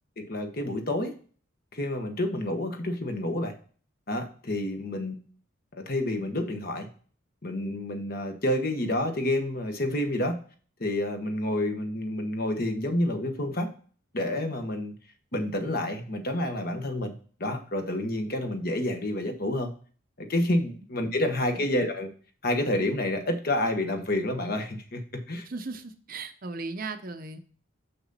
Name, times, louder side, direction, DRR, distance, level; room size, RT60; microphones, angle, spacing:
voice 1, 0.2-1.1 1.7-3.5 4.1-5.2 5.7-6.9 7.4-10.4 10.8-13.7 14.1-14.9 15.3-17.1 17.4-19.7 20.2-22.1 22.4-25.0 25.3-25.5, left 1 dB, 45° left, 5 dB, 1.2 m, -29 dB
voice 2, 25.4-27.4, right 3 dB, 40° right, 8 dB, 0.7 m, -37 dB
6.8 x 5.9 x 4.1 m, 0.42 s
head